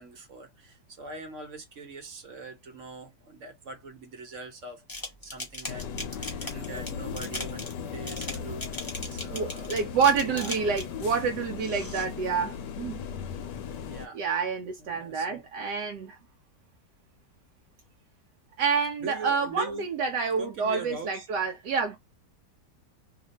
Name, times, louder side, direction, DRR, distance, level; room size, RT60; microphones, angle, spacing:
voice 1, 0.0-9.7 10.2-10.5 13.9-14.2 14.8-15.4 19.0-19.9 20.4-21.3, right 3 dB, 50° right, 1.1 m, -42 dB
sound 1, 4.9-11.0 11.6-12.1, left 2 dB, 20° left, 0.7 m, -38 dB
sound 2, 5.7-14.1, left 7 dB, 80° left, 1.2 m, -37 dB
voice 2, 9.3-13.0 14.1-16.2 18.6-22.0, right 5 dB, 75° right, 1.1 m, -28 dB
2.8 x 2.5 x 3.9 m
omnidirectional pair, 1.9 m